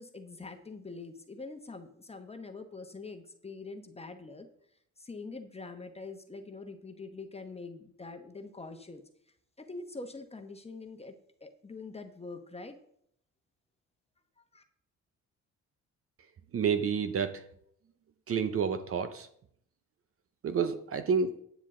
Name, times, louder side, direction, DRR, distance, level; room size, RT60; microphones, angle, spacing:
voice 1, 0.0-4.5 5.0-9.0 9.6-11.1 11.4-12.8 14.5-14.6, left 3 dB, 20° left, 6 dB, 1.1 m, -44 dB
voice 2, 16.5-17.4 18.3-19.3 20.4-21.4, right 6 dB, 50° right, 10 dB, 0.8 m, -29 dB
10.0 x 9.4 x 3.8 m, 0.69 s
cardioid pair, 90°, 30 cm